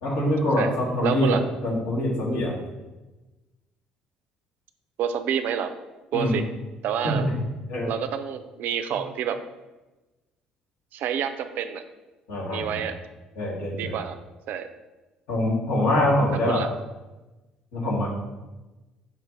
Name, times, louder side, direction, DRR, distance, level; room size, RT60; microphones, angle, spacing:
voice 1, 0.0-2.5 6.1-6.4 7.0-7.3 7.7-7.9 12.3-12.8 13.4-13.9 15.3-16.6 17.7-18.1, left 1 dB, 75° left, -4 dB, 1.4 m, -24 dB
voice 2, 0.6-1.4 5.0-5.7 6.1-6.4 6.8-7.3 7.9-9.4 10.9-11.8 12.5-13.0 13.7-14.2 14.5-14.7 16.5-16.7, right 8 dB, 60° right, 10 dB, 0.3 m, -28 dB
4.4 x 2.5 x 4.8 m, 1.1 s
hypercardioid pair, 55°, 3 cm